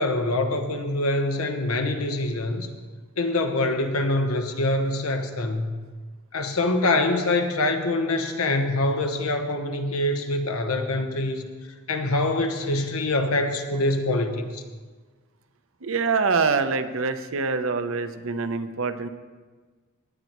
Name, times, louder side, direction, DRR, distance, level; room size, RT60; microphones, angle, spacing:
voice 1, 0.0-2.7 3.2-5.7 6.3-11.4 11.9-14.6, left 2 dB, 85° left, 6 dB, 1.1 m, -25 dB
voice 2, 15.8-19.1, right 4 dB, 70° right, 9 dB, 0.7 m, -25 dB
17.0 x 9.2 x 3.1 m, 1.4 s
head